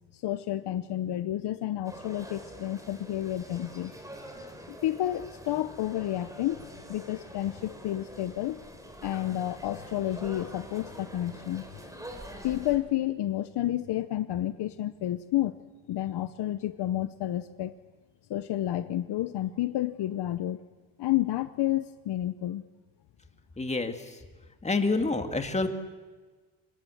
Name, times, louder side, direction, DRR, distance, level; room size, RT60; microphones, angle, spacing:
voice 1, 0.1-3.9 4.7-6.6 6.9-8.6 9.0-11.6 12.4-15.6 15.9-17.7 18.3-20.6 21.0-22.6, left 13 dB, 55° left, 12 dB, 0.9 m, -30 dB
sound 1, 1.8-12.8, equal, 5° right, 3.6 m, -45 dB
voice 2, 23.6-23.9 24.6-25.7, left 3 dB, 15° left, 6 dB, 2.1 m, -27 dB
25.5 x 21.5 x 7.9 m, 1.4 s
cardioid pair, 130°, 47 cm